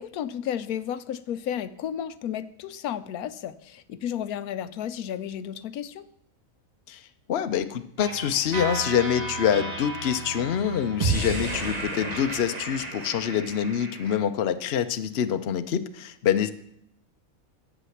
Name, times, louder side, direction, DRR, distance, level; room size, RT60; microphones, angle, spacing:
voice 1, 0.0-6.1, left 9 dB, 80° left, 13 dB, 1.1 m, -33 dB
voice 2, 7.3-16.5, left 9 dB, 55° left, 9 dB, 0.9 m, -26 dB
sound 1, 8.0-14.2, right 3 dB, 30° right, 1.6 m, -32 dB
11.5 x 8.4 x 7.1 m, 0.71 s
omnidirectional pair, 1.5 m